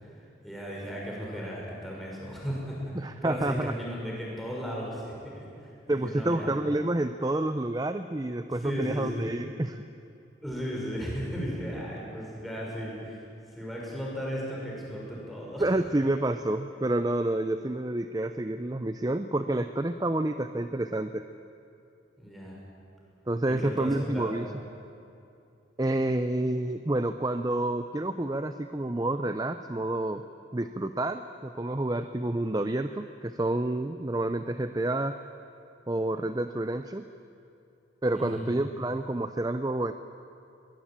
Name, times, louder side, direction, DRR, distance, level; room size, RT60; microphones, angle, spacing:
voice 1, 0.4-6.5 8.5-9.3 10.4-13.2 13.5-15.6 22.2-22.6 23.5-24.4 38.1-38.5, equal, ahead, -4 dB, 6.0 m, -36 dB
voice 2, 2.9-3.7 5.9-9.8 15.6-21.3 23.3-24.5 25.8-30.2 30.5-35.2 35.9-37.0 38.0-39.9, right 1 dB, 20° right, 9 dB, 0.5 m, -29 dB
22.5 x 19.5 x 8.9 m, 2.6 s
head